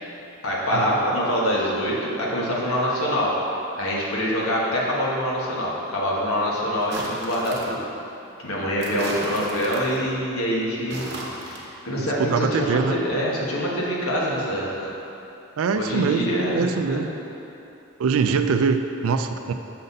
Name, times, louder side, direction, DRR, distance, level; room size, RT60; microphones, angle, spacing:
voice 1, 0.4-3.3 3.7-7.8 8.4-11.1 11.4-14.9 15.8-17.0, equal, 85° left, -5 dB, 1.3 m, -25 dB
sound 1, 6.8-7.8 8.8-10.0 10.8-11.6, right 1 dB, 50° right, 0.9 m, -35 dB
voice 2, 12.0-13.0 15.6-17.1 18.0-19.5, right 5 dB, 80° right, 8 dB, 0.4 m, -23 dB
6.6 x 4.1 x 5.3 m, 2.9 s
head